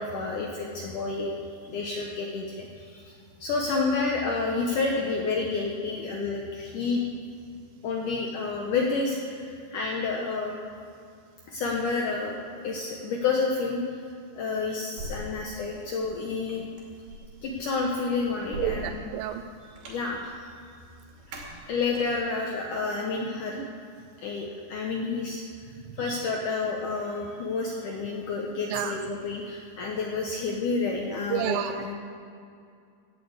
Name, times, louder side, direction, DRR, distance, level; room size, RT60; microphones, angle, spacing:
voice 1, 0.0-3.1 3.4-7.0 7.8-10.5 11.5-12.4 12.6-13.8 14.4-16.7 17.4-19.1 19.9-20.3 21.7-23.6 24.2-25.4 26.0-31.6 31.8-31.9, left 4 dB, 75° left, -1 dB, 1.9 m, -29 dB
sound 1, 15.0-22.4, right 1 dB, 55° right, 3.9 m, -42 dB
voice 2, 18.6-19.4 23.6-23.7 28.7-29.0 31.3-31.9, right 11 dB, 85° right, 7 dB, 2.7 m, -30 dB
17.5 x 6.8 x 8.1 m, 2.4 s
omnidirectional pair, 5.1 m